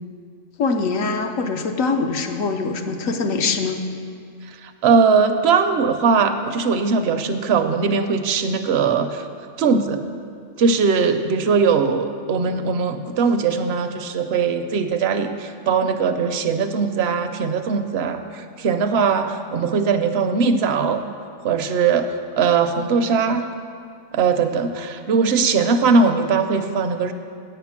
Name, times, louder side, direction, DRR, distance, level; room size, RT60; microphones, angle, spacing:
voice 1, 0.6-3.8, left 4 dB, 80° left, 5 dB, 1.1 m, -23 dB
voice 2, 4.5-9.3 9.6-10.0 10.6-21.0 21.4-23.5 24.1-27.1, right 5 dB, 65° right, 8 dB, 0.7 m, -20 dB
8.8 x 5.8 x 7.2 m, 2.3 s
omnidirectional pair, 1.4 m